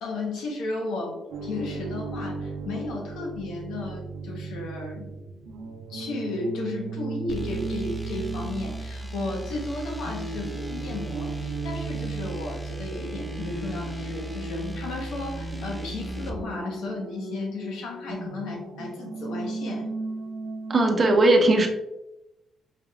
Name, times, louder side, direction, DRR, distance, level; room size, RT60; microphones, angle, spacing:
voice 1, 0.0-5.1 5.9-19.9, left 2 dB, 80° left, 1 dB, 1.0 m, -34 dB
sound 1, 1.3-21.2, right 3 dB, 80° right, 0.5 m, -36 dB
sound 2, 7.3-16.4, right 1 dB, 5° left, 0.6 m, -37 dB
voice 2, 20.7-21.7, right 2 dB, 35° right, 4 dB, 0.7 m, -18 dB
5.0 x 3.0 x 2.4 m, 0.91 s
cardioid pair, 90°, 0 cm